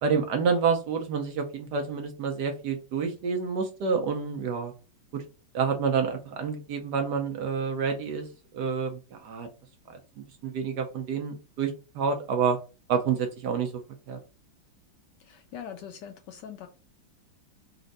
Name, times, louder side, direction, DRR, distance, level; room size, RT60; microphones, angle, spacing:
voice 1, 0.0-4.7 5.1-5.2 5.5-8.3 8.5-9.5 9.9-10.0 10.4-12.6 12.9-13.7 14.1-14.2, right 6 dB, 70° right, 4 dB, 1.1 m, -28 dB
voice 2, 15.2-16.7, left 8 dB, 75° left, 6 dB, 1.0 m, -42 dB
4.2 x 2.5 x 3.9 m, 0.32 s
omnidirectional pair, 2.2 m